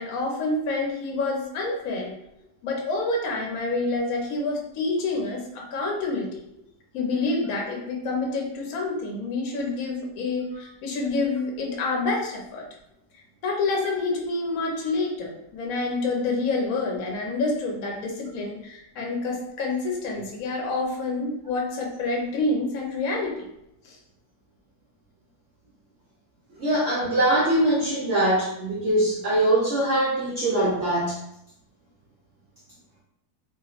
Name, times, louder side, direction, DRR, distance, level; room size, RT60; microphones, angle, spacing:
voice 1, 0.0-2.1 2.6-6.4 6.9-12.6 13.4-23.5 23.8-24.0, left 3 dB, 65° left, 0 dB, 1.1 m, -28 dB
voice 2, 26.6-31.2, right 1 dB, 60° right, -6 dB, 0.9 m, -22 dB
3.0 x 2.8 x 2.4 m, 0.78 s
omnidirectional pair, 1.7 m